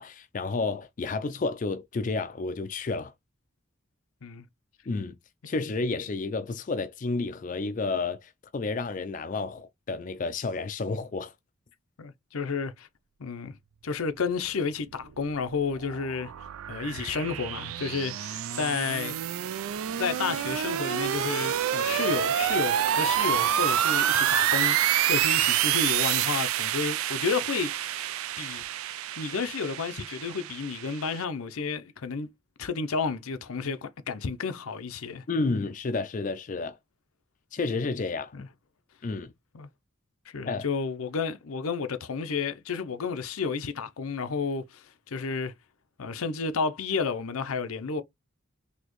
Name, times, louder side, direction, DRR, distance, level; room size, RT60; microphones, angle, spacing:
voice 1, 0.0-3.1 4.9-5.2 5.5-11.3 35.3-36.8 37.5-38.3 39.0-39.3 40.5-40.6, left 3 dB, 40° left, 0.4 m, -31 dB
voice 2, 12.0-12.9 13.2-13.5 13.8-16.3 16.7-19.2 20.0-24.8 25.0-28.6 29.2-32.3 32.6-35.2 38.3-38.5 39.5-39.7 40.3-45.5 46.0-48.0, left 5 dB, 90° left, 0.6 m, -31 dB
sound 1, 15.2-31.2, right 10 dB, 85° right, 0.4 m, -28 dB
4.2 x 2.8 x 3.0 m
head